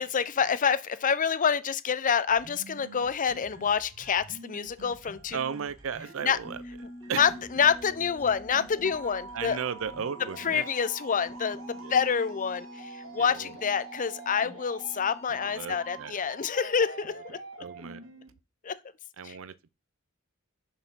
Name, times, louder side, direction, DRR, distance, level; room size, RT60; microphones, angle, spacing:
voice 1, 0.0-5.4 6.2-6.4 7.2-9.6 10.4-17.4 18.6-18.8 19.2-19.4, left 6 dB, 40° left, 0.6 m, -27 dB
sound 1, 2.3-18.3, right 2 dB, 85° right, 2.3 m, -48 dB
voice 2, 5.3-6.6 7.1-7.3 9.3-10.6 11.8-12.1 13.1-13.5 15.3-16.1 17.6-18.0 19.2-19.7, right 7 dB, 70° right, 0.5 m, -35 dB
sound 2, 6.4-16.1, equal, 10° left, 1.7 m, -46 dB
6.7 x 4.6 x 6.2 m
head